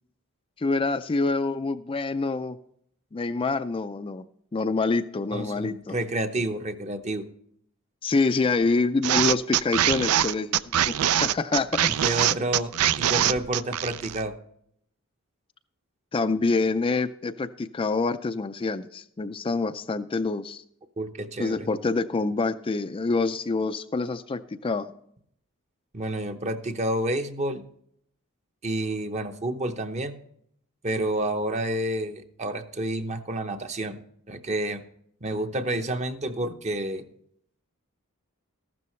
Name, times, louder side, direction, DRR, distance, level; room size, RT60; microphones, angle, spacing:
voice 1, 0.6-2.6 3.1-4.2 4.5-6.0 8.0-11.9 16.1-20.6 21.4-24.9, left 3 dB, 25° left, 9 dB, 0.4 m, -26 dB
voice 2, 5.3-7.3 12.0-14.3 21.0-21.7 25.9-27.7 28.6-30.2 30.8-34.0 34.3-34.8 35.2-37.0, right 1 dB, 30° right, 7 dB, 0.8 m, -29 dB
sound 1, 9.0-14.3, right 11 dB, 75° right, 0.4 m, -23 dB
14.0 x 12.5 x 3.2 m, 0.67 s
head